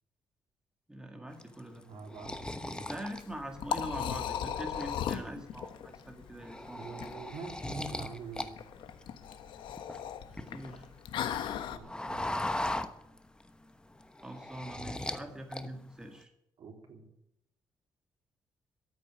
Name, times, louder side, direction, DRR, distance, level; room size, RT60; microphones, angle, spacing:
voice 1, 0.9-1.8 2.9-7.0 10.3-10.9 14.2-16.3, right 1 dB, 10° right, 4 dB, 2.0 m, -43 dB
sound 1, 1.4-4.1 4.6-5.3 5.7-5.9 6.2-8.5 8.8-10.8 11.2-13.5 13.8-15.2 15.5-16.1, left 1 dB, 10° left, 1.1 m, -38 dB
voice 2, 1.9-2.9 6.7-8.6 11.7-12.6 16.6-17.1, right 5 dB, 65° right, 2 dB, 3.6 m, -46 dB
Liquid, 3.1-11.8, left 9 dB, 85° left, 1.2 m, -38 dB
13.5 x 8.6 x 10.0 m, 0.81 s
cardioid pair, 105°, 8 cm